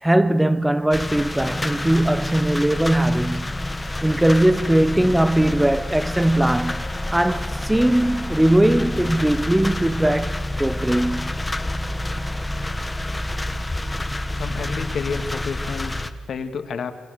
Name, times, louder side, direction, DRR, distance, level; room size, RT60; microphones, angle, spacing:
voice 1, 0.0-3.6 4.0-6.8 7.1-11.3, right 1 dB, 10° right, 0.8 m, -20 dB
sound 1, 0.9-16.1, left 1 dB, 15° left, 1.5 m, -28 dB
voice 2, 14.3-16.9, left 5 dB, 65° left, 2.3 m, -30 dB
29.5 x 23.5 x 6.8 m
cardioid pair, 100°, 0 cm